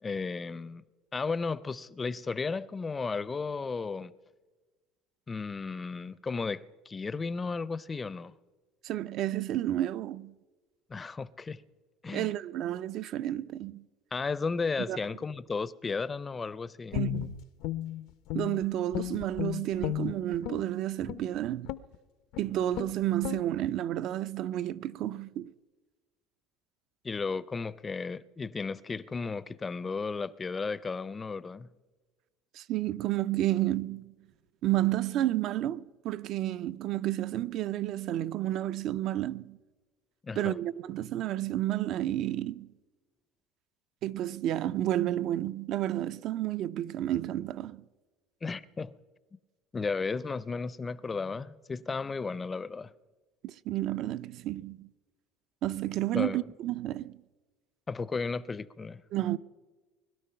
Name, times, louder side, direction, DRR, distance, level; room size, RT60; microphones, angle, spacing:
voice 1, 0.0-0.8 1.1-4.1 5.3-8.3 10.9-11.6 12.0-12.3 14.1-17.0 27.0-31.7 40.2-40.6 48.4-48.9 49.7-52.9 56.1-56.4 57.9-59.0, left 4 dB, 20° left, 0.5 m, -34 dB
voice 2, 8.8-10.3 12.1-13.8 14.9-15.0 16.9-17.4 18.3-21.8 22.4-25.5 32.5-34.1 34.6-39.6 40.4-42.7 44.0-47.8 53.4-54.9 55.6-57.2 59.1-59.4, right 13 dB, 55° right, 0.5 m, -31 dB
Guitar, 16.9-18.6 18.9-20.6 21.0-21.3 21.7-21.9 22.3-22.5 22.7-22.9 23.2-23.4, left 14 dB, 70° left, 0.6 m, -34 dB
21.0 x 12.0 x 5.6 m
cardioid pair, 125°, 0 cm